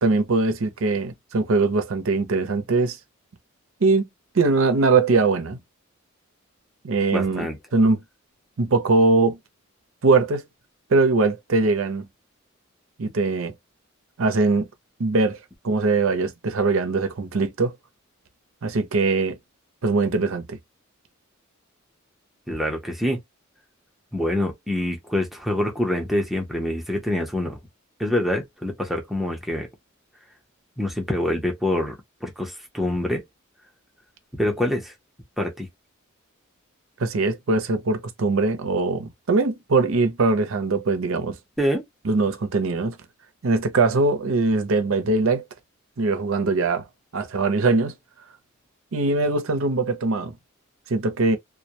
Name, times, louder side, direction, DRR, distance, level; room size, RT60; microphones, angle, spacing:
voice 1, 0.0-3.0 3.8-4.1 4.3-5.6 6.8-7.5 7.7-8.0 8.6-9.4 10.0-10.4 10.9-12.1 13.0-13.5 14.2-14.7 15.0-17.7 18.6-19.4 19.8-20.6 37.0-41.4 42.0-43.0 43.4-45.4 46.0-46.8 47.1-47.9 48.9-50.3 50.9-51.4, right 3 dB, 75° right, 0.6 m, -21 dB
voice 2, 7.1-7.6 22.5-23.2 24.1-27.6 28.0-29.7 30.8-32.0 32.2-33.2 34.4-34.9 35.4-35.7 41.6-41.8, left 1 dB, ahead, 0.7 m, -25 dB
2.2 x 2.1 x 2.8 m
head